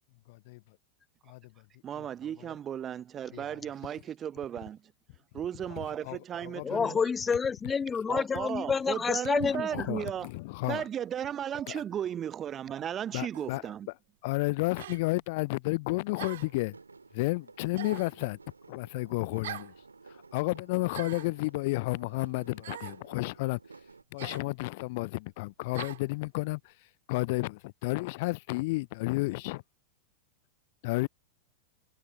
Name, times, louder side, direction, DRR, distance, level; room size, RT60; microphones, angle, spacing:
voice 1, 0.3-0.6 1.3-1.4 3.3-3.4 6.1-6.2 6.4-7.0 9.7-10.8 11.7-11.8 13.1-13.6 14.2-16.7 17.1-18.4 18.7-19.7 20.3-23.6 24.1-26.6 27.1-29.6 30.8-31.1, left 23 dB, 50° left, 0.6 m, -31 dB
voice 2, 1.8-4.8 5.3-7.0 8.1-10.3 10.7-13.9, right 9 dB, 25° right, 0.9 m, -35 dB
voice 3, 6.6-9.9, left 6 dB, 15° left, 1.1 m, -29 dB
sound 1, 13.3-13.6 14.8-15.0 16.2-16.6 17.8-18.2 19.4-19.7 20.9-21.3 22.6-23.0 24.2-24.5 25.7-26.0, right 12 dB, 60° right, 3.4 m, -42 dB
sound 2, 16.4-24.0, right 4 dB, 80° right, 3.3 m, -53 dB
figure-of-eight pair, 90°, 0 cm